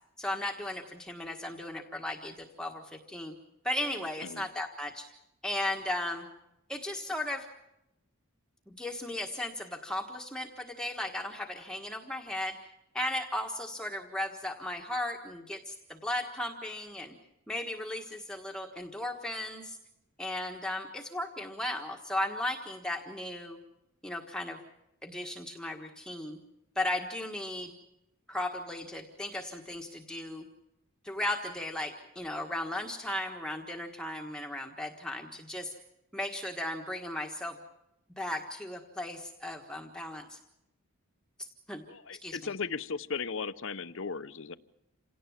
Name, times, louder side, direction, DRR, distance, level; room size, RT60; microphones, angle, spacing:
voice 1, 0.2-3.3 3.6-5.1 5.4-6.3 6.7-7.5 8.7-17.1 17.5-19.8 20.2-23.6 24.0-24.6 25.0-26.4 26.7-27.7 28.3-30.4 31.0-35.7 36.1-37.6 38.2-40.4 41.4-41.8 42.2-42.5, left 1 dB, 5° left, 2 dB, 1.4 m, -36 dB
voice 2, 41.9-44.6, left 5 dB, 60° left, 14 dB, 0.8 m, -36 dB
27.5 x 18.0 x 7.3 m, 0.87 s
head